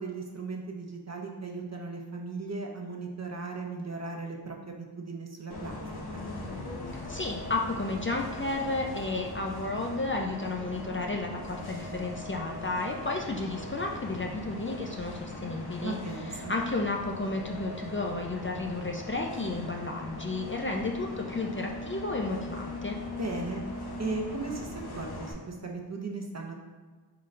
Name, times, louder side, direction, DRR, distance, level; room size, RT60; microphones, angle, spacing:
voice 1, 0.0-5.8 6.1-6.3 15.8-16.5 23.2-23.6 24.0-26.5, right 3 dB, 40° right, 1 dB, 0.7 m, -37 dB
Bus, 5.5-25.3, left 2 dB, 60° left, 0.8 m, -40 dB
voice 2, 7.1-23.0, left 2 dB, 30° left, 1 dB, 0.5 m, -32 dB
3.9 x 3.8 x 3.2 m, 1.4 s
wide cardioid pair, 50°, 42 cm